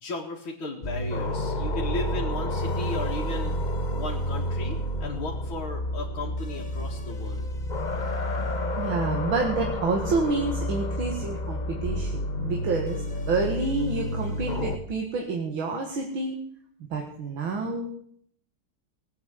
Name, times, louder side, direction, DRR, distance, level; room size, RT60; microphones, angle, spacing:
voice 1, 0.0-3.6 3.9-7.5, left 2 dB, 85° left, -2 dB, 2.8 m, -35 dB
sound 1, 0.8-14.8, left 1 dB, 30° left, 1.0 m, -30 dB
voice 2, 8.8-16.4 16.9-17.9, right 3 dB, 80° right, 1 dB, 2.6 m, -28 dB
18.0 x 8.6 x 8.3 m, 0.65 s
omnidirectional pair, 2.2 m